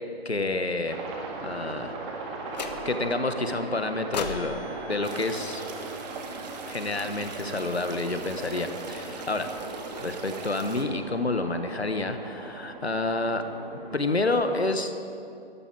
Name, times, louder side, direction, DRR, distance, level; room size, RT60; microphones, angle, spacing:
voice 1, 0.2-1.0 1.4-1.9 2.8-4.6 4.9-5.6 6.7-9.5 10.0-13.5 13.9-14.9, left 2 dB, 90° left, 8 dB, 1.4 m, -29 dB
Aircraft, 0.9-14.3, right 3 dB, 25° right, 1.8 m, -39 dB
sound 1, 2.5-3.2 4.1-6.4, left 6 dB, 45° left, 1.0 m, -38 dB
sound 2, 5.0-10.8, right 4 dB, 40° right, 1.5 m, -41 dB
12.5 x 11.0 x 7.5 m, 2.7 s
figure-of-eight pair, 140°, 31 cm